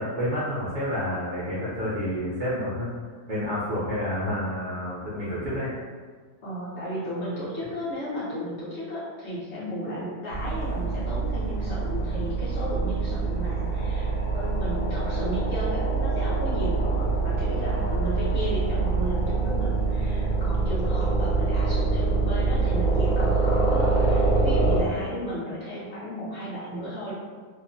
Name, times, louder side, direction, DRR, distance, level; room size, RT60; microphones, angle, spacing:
voice 1, 0.0-2.9 3.3-5.7, equal, 60° right, -8 dB, 0.9 m, -29 dB
voice 2, 6.4-27.1, equal, 55° left, -10 dB, 0.9 m, -34 dB
sound 1, 10.3-24.8, right 3 dB, 80° left, 1.1 m, -25 dB
2.9 x 2.1 x 2.4 m, 1.5 s
omnidirectional pair, 1.6 m